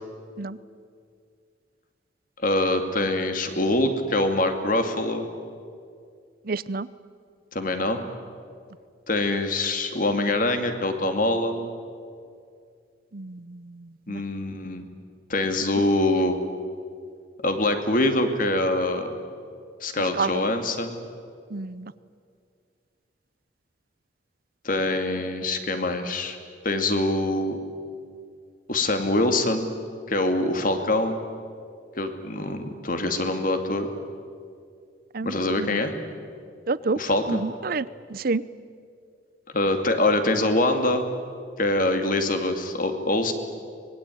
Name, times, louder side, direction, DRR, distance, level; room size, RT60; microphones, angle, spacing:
voice 1, 2.4-5.3 7.5-8.0 9.1-11.7 14.1-14.8 15.3-16.4 17.4-19.2 19.8-21.0 24.6-26.4 26.6-27.6 28.7-29.7 30.1-31.2 32.0-33.9 35.2-35.9 36.9-37.4 39.5-41.0 41.6-43.3, left 2 dB, 50° left, 7 dB, 2.4 m, -24 dB
voice 2, 6.5-6.9 13.1-13.6 14.1-14.2 20.2-20.4 21.5-21.9 35.1-35.7 36.7-37.0 37.3-37.9 38.1-38.4, right 3 dB, 50° right, 18 dB, 0.6 m, -28 dB
25.0 x 21.0 x 9.2 m, 2.3 s
head